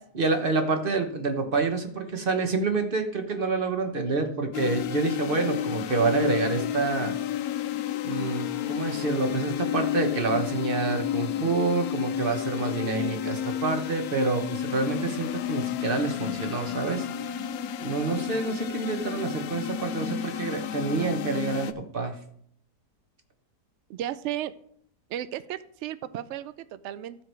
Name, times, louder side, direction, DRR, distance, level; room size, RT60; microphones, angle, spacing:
voice 1, 0.1-7.1 8.0-17.4 17.8-21.7 21.9-22.1, right 3 dB, 35° right, 6 dB, 1.2 m, -27 dB
sound 1, 4.5-21.7, left 10 dB, 70° left, 1.0 m, -31 dB
voice 2, 23.9-24.5 25.1-27.2, right 12 dB, 75° right, 15 dB, 0.6 m, -34 dB
14.5 x 4.9 x 4.6 m, 0.66 s
omnidirectional pair, 1.7 m